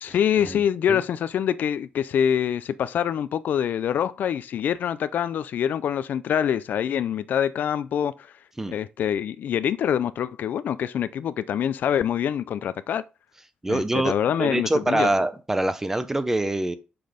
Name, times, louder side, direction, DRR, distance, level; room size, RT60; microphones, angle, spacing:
voice 1, 0.0-8.1 8.7-13.0 13.7-15.1, left 9 dB, 70° left, 0.4 m, -25 dB
voice 2, 13.6-16.8, right 2 dB, 15° right, 0.7 m, -25 dB
6.0 x 5.3 x 5.0 m
wide cardioid pair, 145°, 3 cm